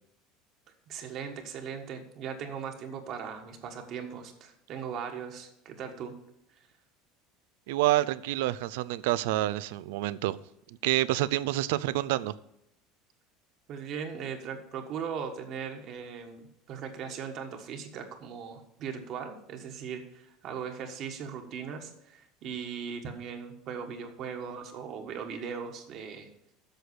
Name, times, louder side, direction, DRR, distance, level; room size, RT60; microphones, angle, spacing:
voice 1, 0.9-6.1 13.7-26.3, right 7 dB, 40° right, 1.4 m, -39 dB
voice 2, 7.7-10.4 10.8-12.3, right 15 dB, 85° right, 0.4 m, -28 dB
8.0 x 6.3 x 8.2 m
cardioid pair, 155°, 0 cm